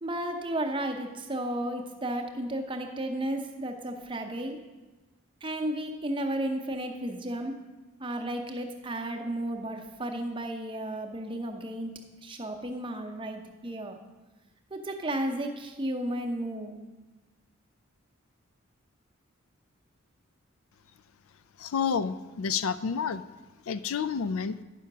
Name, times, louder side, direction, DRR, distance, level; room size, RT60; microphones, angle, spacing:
voice 1, 0.0-4.6 5.4-7.6 8.0-11.9 12.2-14.0 14.7-16.8, right 1 dB, 25° right, 4 dB, 0.7 m, -33 dB
voice 2, 21.6-23.2 23.7-24.6, left 6 dB, 75° left, 14 dB, 0.4 m, -29 dB
9.8 x 5.7 x 6.0 m, 1.2 s
head